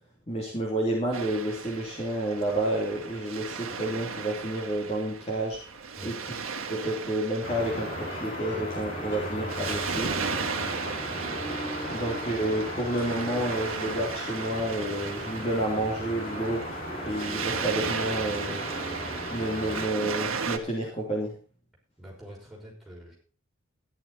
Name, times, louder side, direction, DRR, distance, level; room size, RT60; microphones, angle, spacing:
voice 1, 0.3-5.6 6.0-6.3 6.7-10.1 11.9-16.6 17.0-18.7 19.3-21.3, right 1 dB, 30° left, -2 dB, 2.9 m, -30 dB
Waves surf, 1.1-20.6, right 5 dB, 85° right, 1.6 m, -36 dB
sound 1, 7.4-19.9, equal, 65° left, 7.4 m, -36 dB
voice 2, 22.0-23.2, equal, ahead, -4 dB, 5.7 m, -45 dB
13.5 x 10.5 x 4.2 m, 0.40 s
head